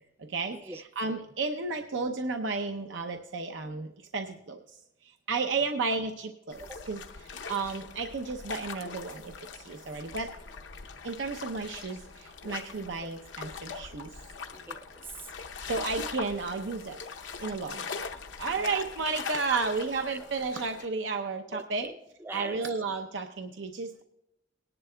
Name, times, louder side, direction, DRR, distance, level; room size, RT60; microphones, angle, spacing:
voice 1, 0.2-4.6 5.3-7.0 7.5-10.3 11.0-14.1 15.6-17.0 17.4-18.0 18.4-21.9 22.3-24.0, right 4 dB, 85° right, 6 dB, 0.6 m, -33 dB
sound 1, 6.5-20.8, left 5 dB, 85° left, 0.7 m, -41 dB
voice 2, 14.5-15.3 18.5-18.8 19.5-20.2 21.5-22.6, right 2 dB, 10° right, 11 dB, 0.4 m, -42 dB
19.5 x 10.5 x 2.2 m, 0.84 s
head